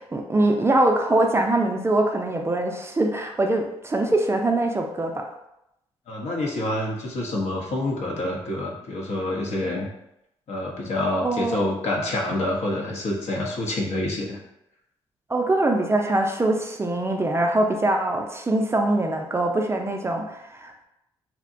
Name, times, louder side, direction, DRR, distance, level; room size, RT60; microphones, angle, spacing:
voice 1, 0.0-5.3 11.2-11.6 15.3-20.8, right 2 dB, 20° right, 2 dB, 0.4 m, -23 dB
voice 2, 6.1-9.9 10.5-14.4, left 1 dB, 60° left, -1 dB, 0.7 m, -27 dB
2.7 x 2.1 x 2.5 m, 0.83 s
supercardioid pair, 60°, 12 cm